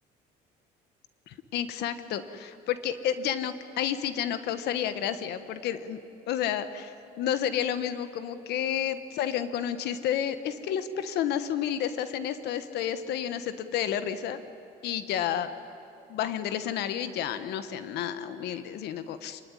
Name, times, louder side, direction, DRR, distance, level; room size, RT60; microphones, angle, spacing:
voice 1, 1.3-6.0 6.3-14.4 14.8-15.5 16.1-19.4, left 9 dB, 75° left, 11 dB, 1.2 m, -31 dB
26.0 x 19.5 x 9.8 m, 2.8 s
cardioid pair, 110°, 17 cm